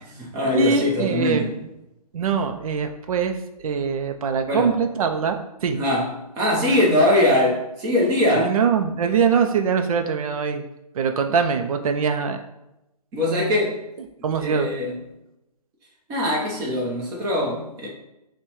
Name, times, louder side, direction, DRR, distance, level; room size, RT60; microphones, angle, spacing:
voice 1, 0.0-1.6 4.5-4.7 5.8-8.5 13.1-13.8 14.2-15.0 16.1-17.9, left 1 dB, 15° right, -2 dB, 0.7 m, -22 dB
voice 2, 0.5-1.5 2.1-3.3 3.6-5.4 5.6-5.8 8.4-10.6 11.0-12.4 14.2-14.7, right 6 dB, 60° right, 6 dB, 0.5 m, -22 dB
6.5 x 2.2 x 3.0 m, 0.92 s
hypercardioid pair, 150°, 20 cm